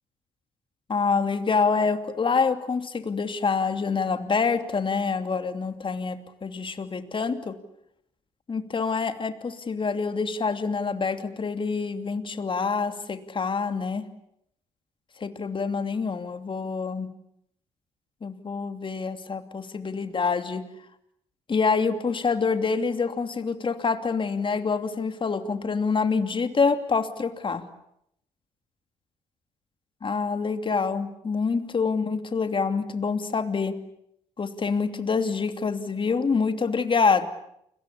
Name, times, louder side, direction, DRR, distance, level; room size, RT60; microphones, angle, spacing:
voice 1, 0.9-7.6 8.5-14.1 15.2-17.1 18.2-20.6 21.5-27.6 30.0-33.8 34.4-37.3, left 5 dB, 35° left, 8 dB, 2.8 m, -26 dB
29.5 x 22.0 x 8.5 m, 0.76 s
hypercardioid pair, 50°, 14 cm